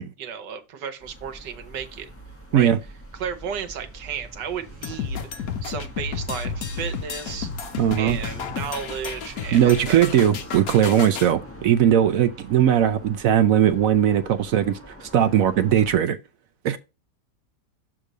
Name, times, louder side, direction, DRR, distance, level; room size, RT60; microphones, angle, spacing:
voice 1, 0.2-2.1 2.5-2.7 3.1-5.2 5.6-7.5 8.0-10.0, right 7 dB, 90° right, 1.6 m, -33 dB
sound 1, 1.0-16.0, equal, 10° left, 1.4 m, -43 dB
sound 2, 4.8-11.3, left 5 dB, 60° left, 1.2 m, -32 dB
voice 2, 7.8-8.2 9.5-16.2 16.6-16.8, right 10 dB, 70° right, 0.9 m, -19 dB
6.6 x 3.7 x 6.0 m
omnidirectional pair, 1.8 m